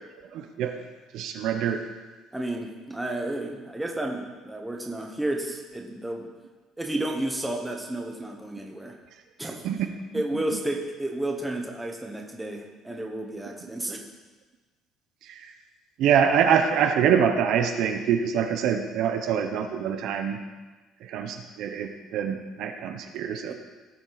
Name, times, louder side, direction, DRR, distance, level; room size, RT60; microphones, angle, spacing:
voice 1, 0.3-0.8 1.1-1.8 9.6-9.8 15.3-15.5 16.0-20.4 21.0-23.5, right 8 dB, 60° right, 6 dB, 0.9 m, -25 dB
voice 2, 2.3-6.3 6.8-9.0 9.4-9.6 10.1-14.1 23.5-23.6, right 1 dB, 5° right, 1 dB, 1.1 m, -32 dB
17.0 x 7.0 x 4.1 m, 1.3 s
cardioid pair, 170°, 0 cm